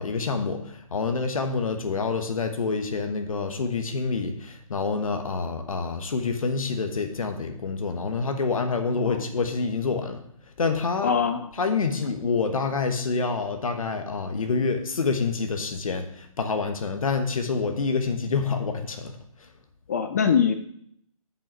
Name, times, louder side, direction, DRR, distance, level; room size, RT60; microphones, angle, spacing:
voice 1, 0.0-10.2 10.6-11.1 11.6-19.5, left 4 dB, 70° left, 6 dB, 1.2 m, -27 dB
voice 2, 11.0-11.5 19.9-20.5, left 7 dB, 30° left, 8 dB, 0.4 m, -23 dB
7.0 x 5.6 x 5.9 m, 0.69 s
hypercardioid pair, 150°, 18 cm